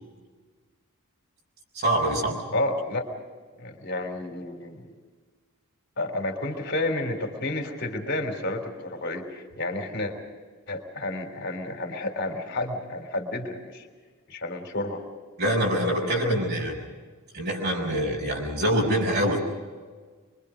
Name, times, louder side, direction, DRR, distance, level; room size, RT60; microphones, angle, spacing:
voice 1, 1.7-2.4 15.4-16.7 17.3-19.4, equal, 50° right, -1 dB, 5.8 m, -25 dB
voice 2, 2.5-3.0 3.6-4.8 6.0-10.1 10.7-13.9 14.3-15.0 16.0-16.3, left 2 dB, 55° left, 5 dB, 3.6 m, -31 dB
25.5 x 24.0 x 5.1 m, 1.5 s
head